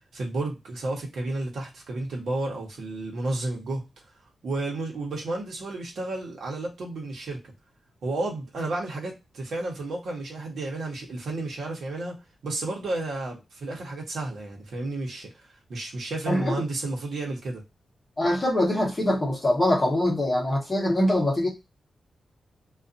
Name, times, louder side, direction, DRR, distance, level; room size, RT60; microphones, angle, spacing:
voice 1, 0.1-3.8 4.4-7.5 8.0-15.3 15.7-17.6, right 2 dB, 75° right, 1.0 m, -32 dB
voice 2, 16.3-16.6 18.2-21.5, left 1 dB, 20° left, 1.0 m, -23 dB
2.5 x 2.4 x 2.5 m
wide cardioid pair, 170°, 0 cm